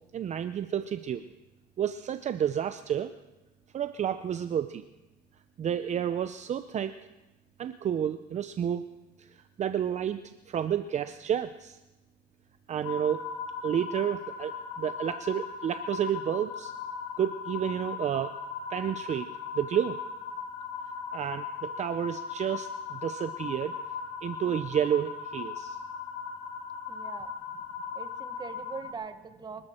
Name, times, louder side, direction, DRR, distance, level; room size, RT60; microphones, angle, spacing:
voice 1, 0.1-1.2 1.8-3.1 3.7-4.8 5.6-6.9 7.6-8.9 9.2-11.8 12.7-13.2 13.6-16.7 17.2-18.4 18.7-19.3 19.5-20.0 21.1-23.7 24.2-25.8, right 9 dB, 45° right, 10 dB, 0.6 m, -30 dB
sound 1, 12.8-28.9, left 6 dB, 85° left, 1.7 m, -38 dB
voice 2, 26.9-27.3 27.9-29.7, right 5 dB, 25° right, 9 dB, 1.2 m, -42 dB
25.0 x 13.0 x 4.4 m, 1.0 s
cardioid pair, 110°, 17 cm